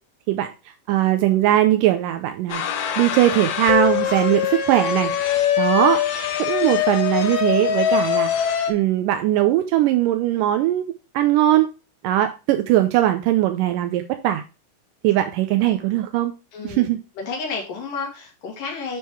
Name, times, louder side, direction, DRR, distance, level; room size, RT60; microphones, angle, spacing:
voice 1, 0.9-2.6 3.0-5.1 5.6-6.0 6.4-8.3 8.7-11.7 12.0-14.4 15.0-16.3 16.6-17.0, right 13 dB, 85° right, 7 dB, 2.2 m, -20 dB
sound 1, 2.5-8.7, left 9 dB, 65° left, 2.1 m, -22 dB
voice 2, 16.5-19.0, left 4 dB, 90° left, 0 dB, 3.7 m, -31 dB
9.4 x 3.6 x 4.5 m, 0.30 s
omnidirectional pair, 3.8 m